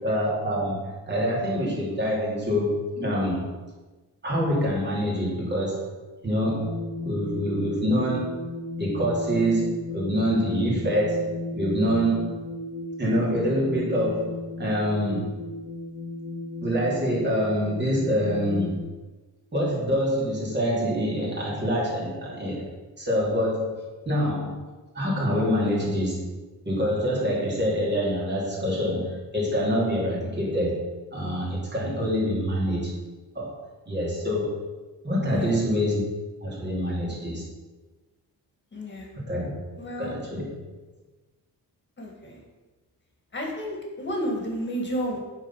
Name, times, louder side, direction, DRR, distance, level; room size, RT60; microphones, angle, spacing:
voice 1, 0.0-3.4 4.2-5.9 6.2-6.7 7.0-8.4 8.8-12.3 13.0-15.3 16.6-18.8 19.5-22.7 23.0-24.6 24.9-26.3 26.6-33.0 33.3-33.5 33.9-34.6 35.0-36.0 36.4-37.5 39.3-39.5 40.0-40.5, equal, 25° right, -4 dB, 2.8 m, -26 dB
sound 1, 6.6-18.8, left 2 dB, 90° left, 1.7 m, -35 dB
voice 2, 35.3-35.6 38.7-39.1 39.8-40.1 42.0-42.4 43.3-45.2, equal, 30° left, 0 dB, 2.0 m, -31 dB
9.6 x 4.5 x 5.6 m, 1.2 s
wide cardioid pair, 140°, 39 cm